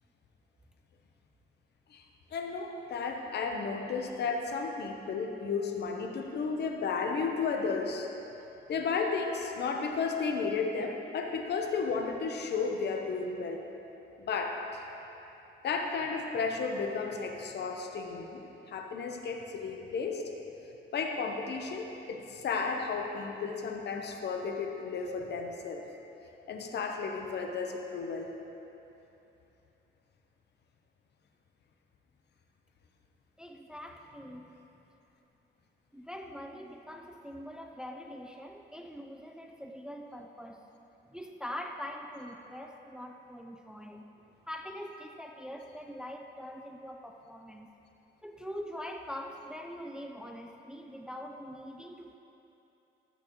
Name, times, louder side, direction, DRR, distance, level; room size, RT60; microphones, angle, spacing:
voice 1, 2.3-8.1 8.7-13.6 14.2-14.8 15.6-20.2 20.9-25.8 26.5-28.3, left 5 dB, 60° left, 3 dB, 0.9 m, -33 dB
voice 2, 33.4-34.7 35.9-40.7 41.1-44.1 44.5-47.7 48.2-52.2, equal, 5° right, 3 dB, 0.5 m, -43 dB
13.0 x 8.4 x 3.1 m, 3.0 s
cardioid pair, 90°, 20 cm